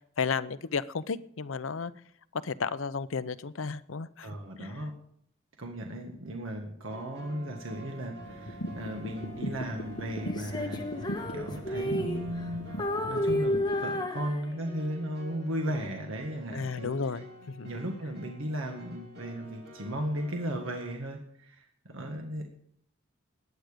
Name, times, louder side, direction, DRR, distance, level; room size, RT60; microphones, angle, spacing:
voice 1, 0.2-1.9 2.3-4.3 4.6-4.8 12.0-12.1 16.5-17.2 17.6-17.7, left 5 dB, 80° left, 15 dB, 0.6 m, -33 dB
voice 2, 4.2-4.9 5.6-12.8 13.1-16.9 17.6-22.5, equal, 90° right, 3 dB, 1.7 m, -36 dB
sound 1, 6.9-20.9, right 1 dB, 55° right, 3.0 m, -49 dB
sound 2, 8.2-13.7, left 1 dB, 65° left, 1.4 m, -39 dB
Female singing, 10.2-12.5 12.8-14.9, left 1 dB, 20° left, 1.2 m, -31 dB
19.0 x 9.2 x 5.1 m, 0.69 s
head